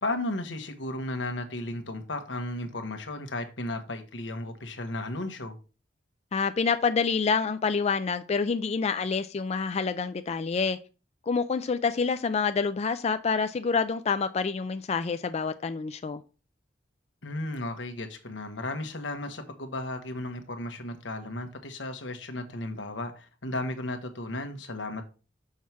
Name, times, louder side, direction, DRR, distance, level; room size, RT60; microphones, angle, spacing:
voice 1, 0.0-5.6 17.2-25.0, left 2 dB, 90° left, 1.3 m, -34 dB
voice 2, 6.3-10.8 11.3-16.2, left 5 dB, 35° left, 0.4 m, -27 dB
6.4 x 4.6 x 5.8 m
head